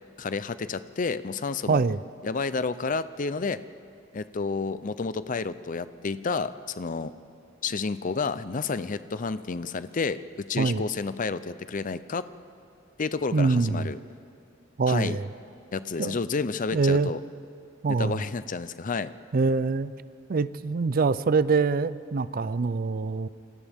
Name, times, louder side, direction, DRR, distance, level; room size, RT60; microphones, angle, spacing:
voice 1, 0.2-1.8 2.2-3.6 4.1-7.1 7.6-12.3 13.0-14.0 14.9-15.2 15.7-17.2 17.9-19.1, left 4 dB, 40° left, 14 dB, 0.5 m, -30 dB
voice 2, 1.7-2.0 10.6-10.8 13.3-13.9 14.8-15.3 16.0-16.2 16.7-17.1 17.8-18.2 19.3-19.9 20.3-23.3, right 4 dB, 45° right, 16 dB, 0.4 m, -24 dB
28.5 x 25.5 x 3.6 m, 2.5 s
head